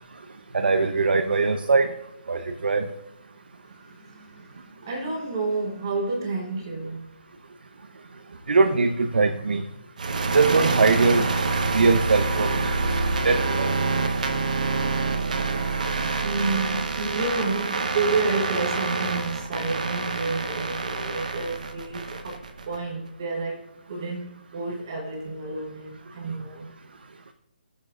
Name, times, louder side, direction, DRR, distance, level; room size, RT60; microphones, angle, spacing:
voice 1, 0.5-1.9 2.3-2.9 8.5-9.6 10.3-11.3 11.7-12.7 13.2-13.7, right 4 dB, 80° right, 0.8 m, -21 dB
voice 2, 3.7-7.1 16.2-26.7, right 3 dB, 25° right, 1.2 m, -31 dB
sound 1, 10.0-22.8, right 3 dB, 50° right, 1.1 m, -26 dB
17.5 x 7.3 x 2.5 m
hypercardioid pair, 180°, 5 cm